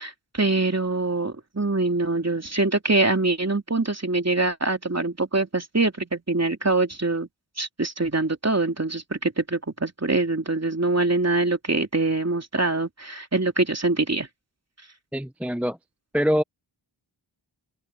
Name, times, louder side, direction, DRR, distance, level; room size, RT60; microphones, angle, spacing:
voice 1, 0.0-7.3 7.6-14.3, right 2 dB, 30° right, 3.1 m, -24 dB
voice 2, 15.1-15.8 16.1-16.4, equal, 5° right, 0.6 m, -23 dB
open air
cardioid pair, 40°, 49 cm